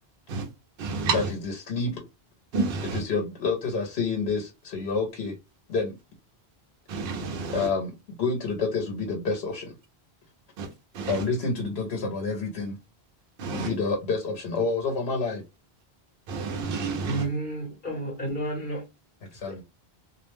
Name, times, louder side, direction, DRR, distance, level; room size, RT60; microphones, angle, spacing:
voice 1, 0.8-1.3 2.5-3.0 6.9-7.7 10.6-11.3 13.4-13.7 16.3-17.3, right 4 dB, 65° right, 0.8 m, -30 dB
voice 2, 1.7-2.0 2.9-5.3 5.7-5.9 7.5-9.7 11.1-12.8 13.5-15.4 19.3-19.6, left 4 dB, 85° left, 0.9 m, -28 dB
voice 3, 17.0-18.8 19.5-19.6, right 1 dB, 55° left, 1.0 m, -31 dB
2.5 x 2.0 x 3.1 m
omnidirectional pair, 1.1 m